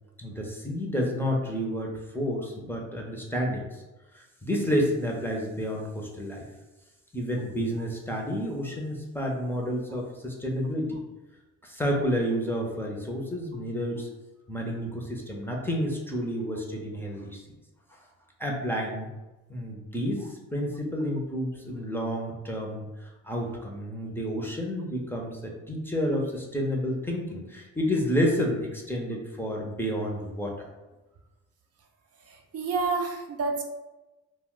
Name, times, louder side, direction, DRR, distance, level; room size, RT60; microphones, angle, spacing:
voice 1, 0.2-3.8 4.1-6.5 7.1-11.0 11.6-14.1 14.5-17.4 18.4-19.1 19.5-30.5, equal, 5° left, -1 dB, 0.6 m, -30 dB
voice 2, 32.3-33.6, right 4 dB, 55° right, 3 dB, 0.5 m, -29 dB
2.2 x 2.2 x 3.7 m, 1.1 s
cardioid pair, 90°, 30 cm